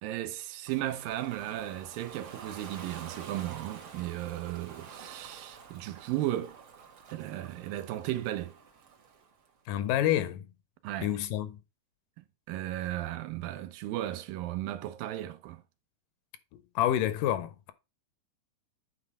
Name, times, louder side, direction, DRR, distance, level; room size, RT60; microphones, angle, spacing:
voice 1, 0.0-6.6 7.1-8.5 10.8-11.1 12.2-15.6, right 14 dB, 85° right, 2.5 m, -35 dB
Ocean, 0.7-9.5, right 6 dB, 55° right, 1.7 m, -48 dB
voice 2, 9.7-10.5 11.0-11.6 16.5-17.7, left 12 dB, 80° left, 2.2 m, -28 dB
8.7 x 4.1 x 5.4 m
omnidirectional pair, 4.0 m